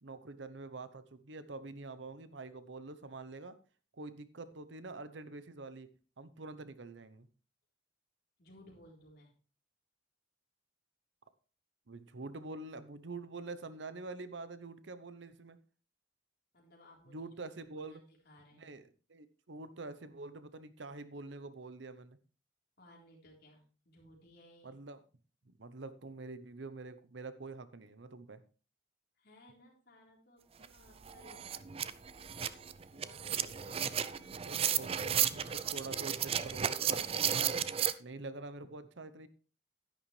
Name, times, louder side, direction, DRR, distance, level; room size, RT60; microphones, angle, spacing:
voice 1, 0.0-3.6 3.9-5.9 6.2-7.3 11.9-15.6 17.1-18.0 18.6-18.8 19.1-22.2 24.6-25.0 25.4-28.4 34.5-37.6 38.0-39.3, right 3 dB, 70° right, 13 dB, 0.8 m, -46 dB
voice 2, 8.4-9.3 16.5-17.3 17.6-18.8 22.8-24.8 29.2-32.0 32.9-35.0, left 1 dB, 60° left, -1 dB, 3.8 m, -60 dB
sound 1, 30.6-30.7 31.0-37.9, right 9 dB, 30° right, 0.4 m, -34 dB
10.5 x 10.0 x 3.3 m, 0.36 s
head